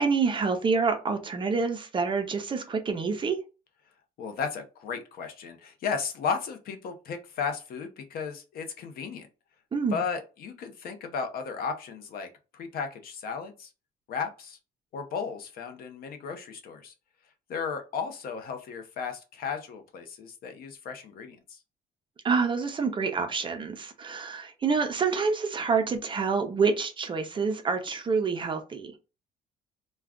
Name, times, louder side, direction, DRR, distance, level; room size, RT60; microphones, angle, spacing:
voice 1, 0.0-3.4 9.7-10.0 22.2-28.9, right 5 dB, 30° right, 0.5 m, -27 dB
voice 2, 4.2-9.3 9.9-13.7 14.1-14.6 14.9-16.9 17.5-21.6, left 6 dB, 60° left, 0.7 m, -35 dB
2.4 x 2.2 x 3.5 m
cardioid pair, 110°, 17 cm